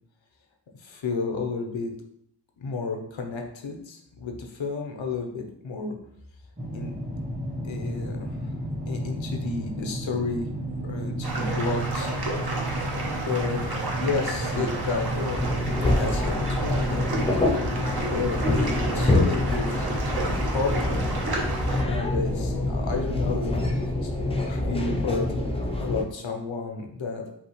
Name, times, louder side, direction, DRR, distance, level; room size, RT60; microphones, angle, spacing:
voice 1, 0.8-1.9 2.6-6.0 6.7-6.9 7.6-8.4 8.9-10.5 10.8-12.1 13.2-15.5 15.8-17.3 18.1-19.9 20.5-21.1 21.9-24.1 24.5-25.3 25.8-27.2, left 4 dB, 85° left, 3 dB, 0.8 m, -31 dB
sound 1, 6.6-25.4, right 1 dB, 20° right, 1.1 m, -34 dB
sound 2, 11.2-21.8, right 2 dB, 55° right, 1.0 m, -31 dB
sound 3, 15.3-26.0, left 2 dB, 15° left, 0.6 m, -26 dB
5.2 x 2.8 x 3.1 m, 0.71 s
wide cardioid pair, 70°, 45 cm